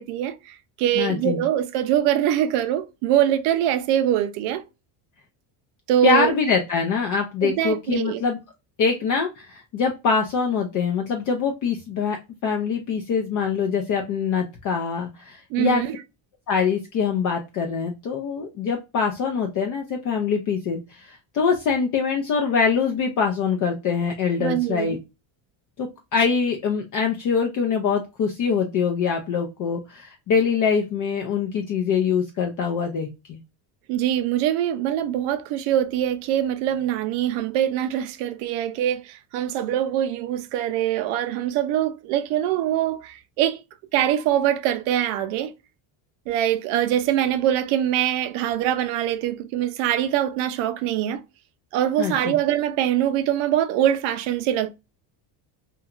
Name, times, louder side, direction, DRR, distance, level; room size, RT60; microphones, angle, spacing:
voice 1, 0.0-4.6 5.9-6.3 7.4-8.2 15.5-15.9 24.4-25.0 33.9-43.6 43.9-45.5 46.3-51.2 51.7-54.7, right 11 dB, 90° right, 0.6 m, -23 dB
voice 2, 1.0-1.4 6.0-8.4 8.8-12.2 12.4-15.8 16.5-25.0 25.8-33.4 52.0-52.4, left 6 dB, 40° left, 0.4 m, -24 dB
2.9 x 2.3 x 2.3 m
cardioid pair, 155°, 48 cm